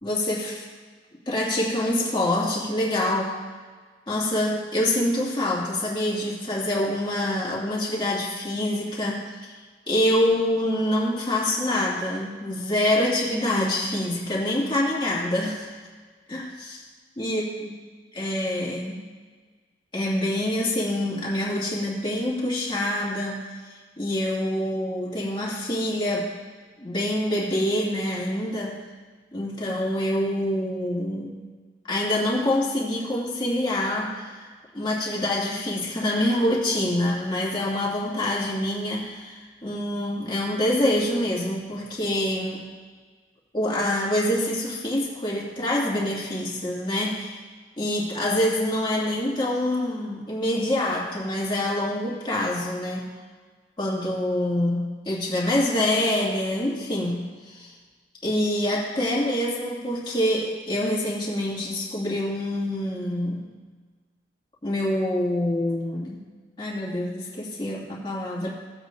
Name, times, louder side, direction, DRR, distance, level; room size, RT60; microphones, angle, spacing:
voice 1, 0.0-0.6 1.3-3.3 4.1-9.4 9.9-15.7 16.3-16.8 17.2-17.7 18.2-19.0 19.9-23.4 24.0-26.3 26.8-28.8 29.3-31.4 31.9-34.5 34.7-42.6 43.5-47.4 47.8-53.1 53.8-57.7 58.2-63.5 64.6-66.2 66.6-68.5, left 1 dB, 25° left, -5 dB, 2.2 m, -26 dB
18.0 x 8.1 x 2.6 m, 1.5 s
head